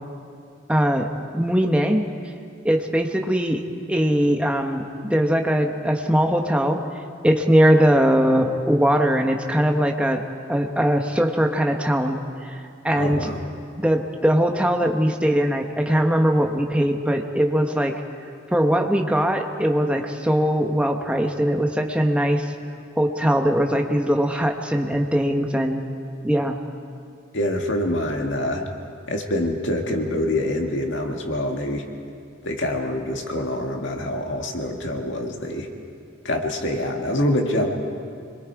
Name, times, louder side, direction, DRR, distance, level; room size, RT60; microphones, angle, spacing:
voice 1, 0.7-1.1 1.3-2.0 2.6-3.6 3.9-6.8 7.2-10.2 10.5-13.3 13.8-17.9 18.5-22.5 23.0-25.8 26.2-26.6, equal, 5° right, 3 dB, 1.1 m, -21 dB
voice 2, 12.9-13.4 27.3-28.6 29.1-31.8 32.4-35.7 36.2-37.7, left 1 dB, 65° left, 2 dB, 2.1 m, -25 dB
26.0 x 22.0 x 4.8 m, 2.3 s
head